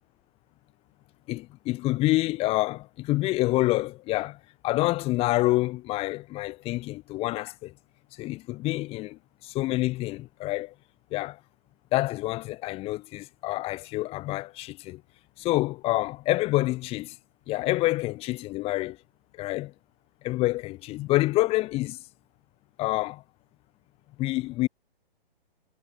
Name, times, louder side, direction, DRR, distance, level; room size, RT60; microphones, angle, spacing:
voice 1, 1.3-4.4 4.6-7.7 8.2-10.7 11.1-11.4 11.9-15.0 15.4-17.1 17.5-19.0 19.4-19.7 20.2-22.0 22.8-23.2 24.2-24.7, left 18 dB, 20° left, 1.2 m, -27 dB
figure-of-eight pair, 130°, 30 cm